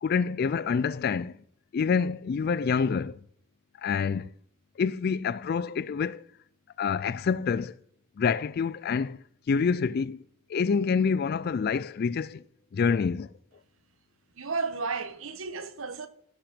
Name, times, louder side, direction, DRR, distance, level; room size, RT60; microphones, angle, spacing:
voice 1, 0.0-1.4 1.7-3.2 3.8-4.3 4.8-6.2 6.8-7.7 8.2-9.2 9.5-10.2 10.5-12.4 12.7-13.3, left 5 dB, 50° left, 0.3 m, -27 dB
voice 2, 14.4-16.1, right 4 dB, 75° right, 1.1 m, -33 dB
16.5 x 6.0 x 5.1 m
head